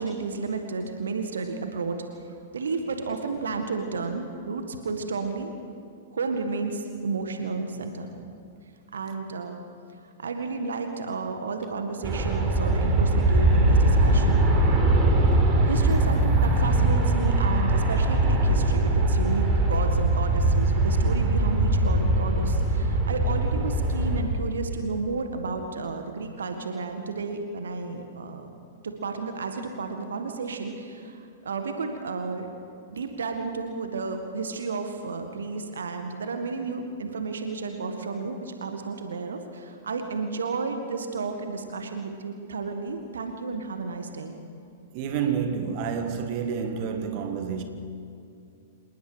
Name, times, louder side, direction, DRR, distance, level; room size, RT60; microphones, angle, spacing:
voice 1, 0.0-2.0 2.5-5.5 6.1-8.1 8.9-9.6 10.2-14.4 15.7-28.5 28.8-32.5 32.9-44.4, right 4 dB, 65° right, 1.7 m, -32 dB
Aircraft, 12.0-24.2, right 2 dB, 25° right, 4.2 m, -21 dB
voice 2, 44.9-47.6, right 7 dB, 40° right, 1.9 m, -29 dB
27.0 x 19.5 x 5.1 m
figure-of-eight pair, 105°, 0 cm